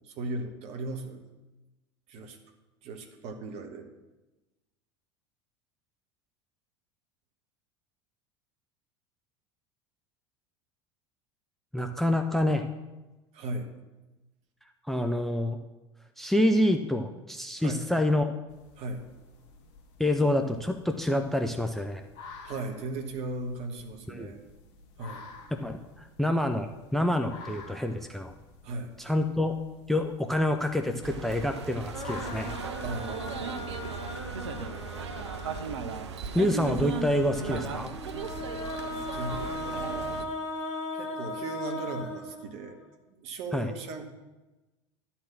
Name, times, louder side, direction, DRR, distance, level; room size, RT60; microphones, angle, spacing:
voice 1, 0.0-1.2 2.1-2.4 2.8-3.9 13.3-13.7 17.6-17.8 18.8-19.0 22.4-24.4 25.0-25.3 28.6-28.9 32.8-33.9 34.7-35.4 39.1-40.2 40.9-42.8 43.1-44.0, right 2 dB, 45° right, 5 dB, 1.3 m, -37 dB
voice 2, 11.7-12.6 14.9-15.6 16.2-18.3 20.0-22.0 24.1-24.3 25.5-28.3 29.0-29.5 29.9-32.5 36.3-37.9 43.5-43.7, left 1 dB, ahead, 6 dB, 0.5 m, -27 dB
sound 1, 18.5-32.4, left 4 dB, 50° left, 1.2 m, -51 dB
sound 2, 31.0-40.3, right 5 dB, 70° right, 0.7 m, -37 dB
sound 3, 31.9-35.9 37.0-42.8, left 2 dB, 75° left, 1.3 m, -38 dB
11.5 x 4.4 x 7.3 m, 1.1 s
figure-of-eight pair, 75°, 15 cm